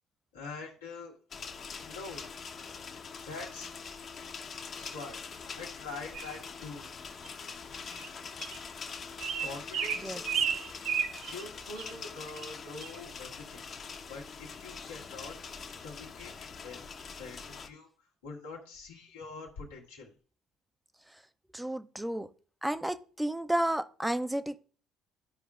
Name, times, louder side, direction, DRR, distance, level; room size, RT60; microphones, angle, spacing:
voice 1, 0.3-1.1 1.8-2.3 3.3-3.7 4.8-5.2 5.5-6.9 7.5-7.7 9.4-10.5 11.3-13.6 14.1-15.4 15.8-16.8 17.2-17.9 18.2-20.1, left 3 dB, 90° left, -2 dB, 1.6 m, -44 dB
sound 1, 1.3-17.7, left 5 dB, 45° left, 0.9 m, -44 dB
sound 2, 6.1-6.4 7.2-7.3 7.9-8.1 8.4-8.6 9.2-11.4 11.8-11.9 12.3-12.5 12.8-13.0, right 7 dB, 65° right, 0.6 m, -33 dB
voice 2, 21.5-22.3 22.6-24.6, right 1 dB, 10° right, 11 dB, 0.5 m, -32 dB
12.0 x 4.9 x 2.4 m, 0.41 s
hypercardioid pair, 55°, 0 cm